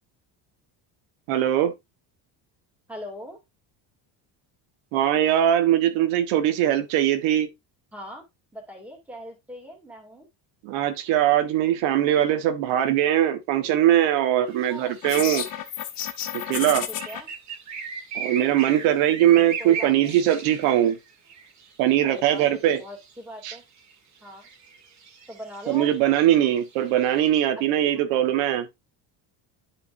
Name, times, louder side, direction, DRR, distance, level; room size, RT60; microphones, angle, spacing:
voice 1, 1.3-1.7 4.9-7.5 10.6-15.4 16.5-16.8 18.1-21.0 21.8-22.8 23.4-23.5 25.7-28.7, right 11 dB, 90° right, 1.4 m, -21 dB
voice 2, 2.9-3.4 7.9-8.2 8.5-10.3 14.7-14.9 16.9-17.3 19.6-20.2 22.0-23.6 24.2-24.5 25.3-25.9, equal, 5° right, 2.5 m, -40 dB
sound 1, 14.5-27.3, right 6 dB, 35° right, 1.7 m, -39 dB
sound 2, 15.0-17.2, left 11 dB, 45° left, 1.0 m, -31 dB
10.5 x 5.3 x 2.6 m
cardioid pair, 155°, 46 cm